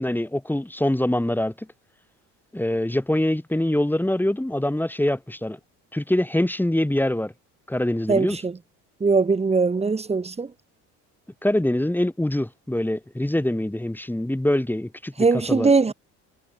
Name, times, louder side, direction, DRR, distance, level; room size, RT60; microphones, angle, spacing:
voice 1, 0.0-1.5 2.5-5.6 5.9-7.3 7.7-8.4 11.4-15.9, left 1 dB, 5° left, 1.9 m, -24 dB
voice 2, 8.1-8.6 9.0-10.5 15.2-15.9, right 4 dB, 15° right, 1.0 m, -21 dB
supercardioid pair, 80°, 36 cm